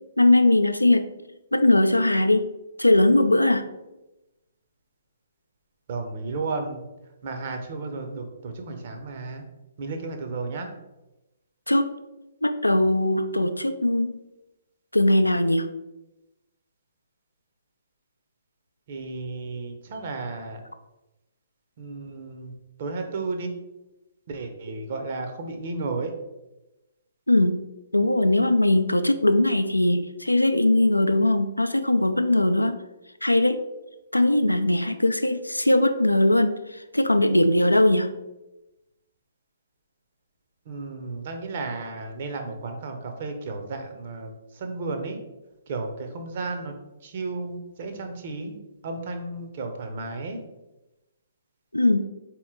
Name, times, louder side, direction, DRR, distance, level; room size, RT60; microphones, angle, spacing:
voice 1, 0.2-1.1 1.5-2.5 2.8-3.6 11.7-11.9 12.4-14.1 14.9-15.7 27.3-27.6 27.9-32.8 33.2-33.6 34.1-38.1 51.7-52.0, left 1 dB, 85° left, 9 dB, 0.3 m, -20 dB
voice 2, 5.9-6.9 7.2-9.4 9.8-10.7 18.9-20.6 21.8-22.5 22.8-23.5 24.3-26.1 40.7-45.2 45.7-46.7 47.0-48.6 48.8-50.4, right 3 dB, 45° right, 4 dB, 0.7 m, -33 dB
4.1 x 2.9 x 3.7 m, 0.98 s
figure-of-eight pair, 125°, 0 cm